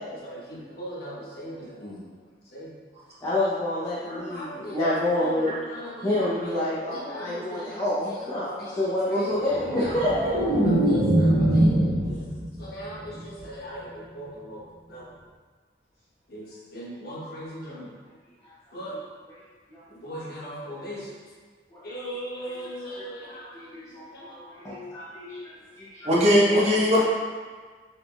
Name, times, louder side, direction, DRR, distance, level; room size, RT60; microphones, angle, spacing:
voice 1, 0.2-2.0 2.5-2.7 4.0-6.1 6.4-8.9 9.2-9.9 10.6-12.2 12.6-14.6 14.9-15.0 16.3-17.9 18.7-19.0 19.9-21.1 21.8-23.6 24.1-24.3, equal, 60° left, -6 dB, 1.0 m, -39 dB
voice 2, 3.2-5.5 6.0-10.3 18.4-18.5 19.3-19.4 19.7-20.2 20.6-20.9 21.7-22.0 22.4-22.6 22.9-23.0 23.5-26.2 26.5-26.6, left 1 dB, 20° left, -9 dB, 0.6 m, -29 dB
sound 1, 9.5-12.7 13.0-13.4, right 1 dB, 85° right, 1.5 m, -22 dB
voice 3, 26.0-27.0, equal, 35° right, -6 dB, 0.9 m, -19 dB
4.0 x 3.4 x 2.3 m, 1.5 s
head